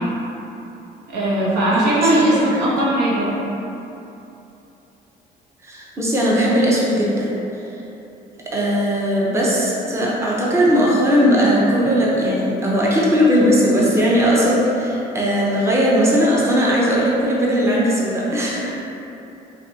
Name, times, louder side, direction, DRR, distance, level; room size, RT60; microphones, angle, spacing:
voice 1, 1.1-3.3, right 1 dB, 85° right, -6 dB, 1.0 m, -18 dB
voice 2, 1.7-2.2 5.6-7.3 8.5-18.7, equal, 15° right, -5 dB, 0.7 m, -18 dB
4.1 x 3.3 x 2.7 m, 2.9 s
cardioid pair, 110°, 17 cm